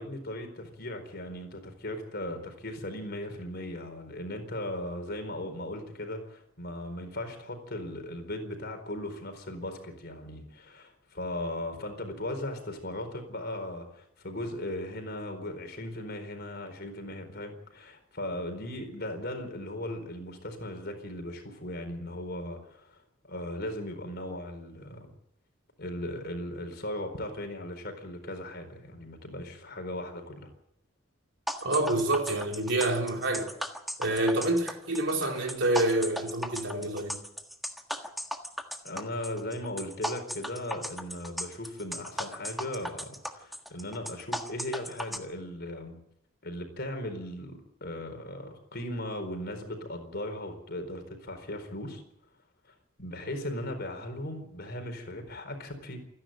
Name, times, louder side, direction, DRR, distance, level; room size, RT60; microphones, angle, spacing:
voice 1, 0.0-23.0 23.3-25.1 25.8-30.5 38.8-46.0 46.4-52.0 53.0-56.0, left 1 dB, 50° left, 6 dB, 4.5 m, -37 dB
sound 1, 31.5-45.2, equal, ahead, 1.5 m, -36 dB
voice 2, 31.6-33.5 34.0-37.2, right 2 dB, 60° right, 2 dB, 4.0 m, -27 dB
28.0 x 10.5 x 9.2 m, 0.78 s
head